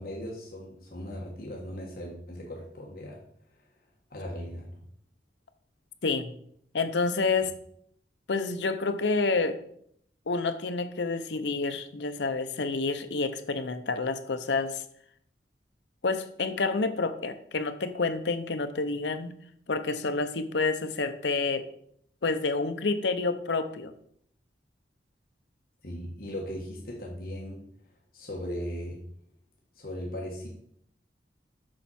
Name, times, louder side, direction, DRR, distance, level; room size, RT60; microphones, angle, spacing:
voice 1, 0.0-3.2 4.1-4.8 25.8-27.6 28.1-29.0 29.7-30.5, equal, 55° left, -2 dB, 1.5 m, -38 dB
voice 2, 6.0-6.3 6.7-7.5 8.3-9.6 10.3-14.8 16.0-19.4 19.7-21.6 22.2-23.9, left 3 dB, 80° left, 9 dB, 0.7 m, -28 dB
7.7 x 5.7 x 4.2 m, 0.67 s
head